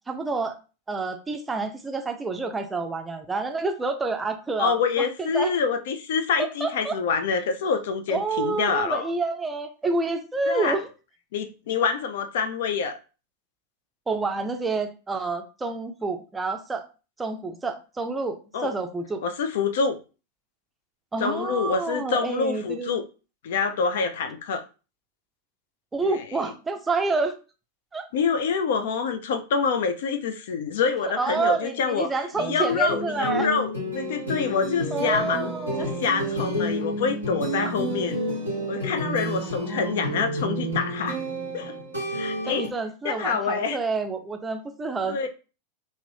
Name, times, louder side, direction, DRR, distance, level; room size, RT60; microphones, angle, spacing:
voice 1, 0.1-0.6 0.9-5.5 6.6-6.9 8.1-10.9 14.1-16.8 17.2-19.2 21.1-22.9 25.9-27.3 27.9-28.0 31.2-33.5 34.9-35.9 37.6-37.7 39.4-40.3 42.2-45.3, right 3 dB, 10° right, 5 dB, 0.4 m, -28 dB
voice 2, 4.6-9.1 10.5-10.8 11.3-13.0 18.5-18.7 19.2-20.0 21.2-23.0 23.4-24.6 26.0-26.5 28.1-35.5 35.8-38.2 38.7-41.2 41.5-41.8 42.1-42.7 43.0-43.8 45.1-45.3, left 5 dB, 55° left, 7 dB, 0.3 m, -26 dB
sound 1, 32.3-42.7, right 1 dB, 85° left, 1.4 m, -30 dB
2.6 x 2.5 x 3.2 m, 0.33 s
figure-of-eight pair, 90°, 0 cm